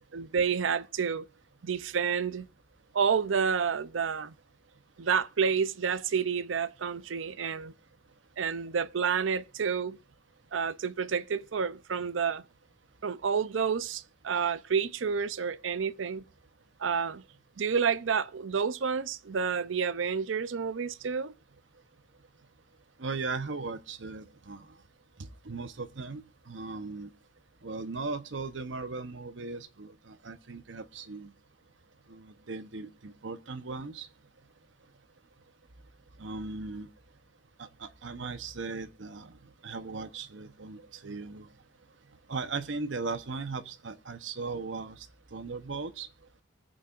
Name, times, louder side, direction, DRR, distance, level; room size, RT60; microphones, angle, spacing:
voice 1, 0.1-1.3 1.6-2.5 2.9-4.3 5.0-7.7 8.4-10.0 10.5-12.4 13.0-16.2 16.8-17.2 17.6-21.3, right 6 dB, 90° right, 0.6 m, -29 dB
voice 2, 23.0-24.7 25.4-27.1 27.6-31.3 32.1-34.1 36.2-36.9 37.6-39.3 39.6-41.5 42.3-45.1 45.3-46.1, right 4 dB, 75° right, 0.9 m, -38 dB
24.0 x 8.5 x 2.5 m
head